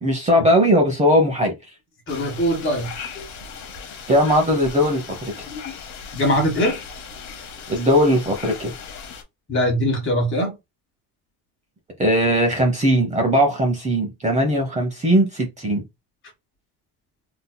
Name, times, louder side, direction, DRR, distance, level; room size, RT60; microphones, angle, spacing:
voice 1, 0.0-1.5 4.1-5.2 7.7-8.7 12.0-15.8, equal, 20° right, 0.8 m, -19 dB
sound 1, 2.1-9.2, left 6 dB, 50° left, 1.0 m, -37 dB
voice 2, 2.1-3.2 5.5-5.7 6.1-6.8 9.5-10.5, equal, 35° left, 1.6 m, -22 dB
3.7 x 2.9 x 2.2 m
cardioid pair, 125°, 37 cm